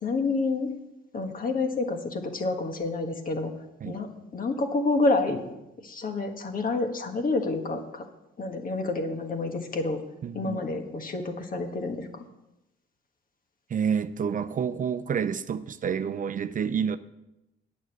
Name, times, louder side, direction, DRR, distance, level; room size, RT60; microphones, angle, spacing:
voice 1, 0.0-0.7 1.1-3.5 3.8-5.5 5.8-8.0 8.4-10.0 10.3-12.1, left 3 dB, 45° left, 1.5 m, -28 dB
voice 2, 10.2-10.6 13.7-17.0, right 7 dB, 40° right, 0.5 m, -29 dB
9.0 x 6.6 x 7.8 m
cardioid pair, 90°, 20 cm